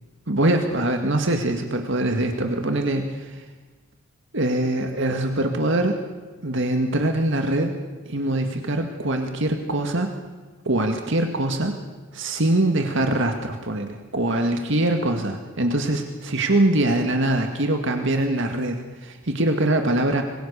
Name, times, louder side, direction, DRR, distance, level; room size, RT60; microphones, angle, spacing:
voice 1, 0.3-3.4 4.3-6.0 6.4-7.7 8.1-10.1 10.7-11.8 12.1-20.2, right 1 dB, 60° right, 5 dB, 2.0 m, -23 dB
26.0 x 23.0 x 6.9 m, 1.3 s
head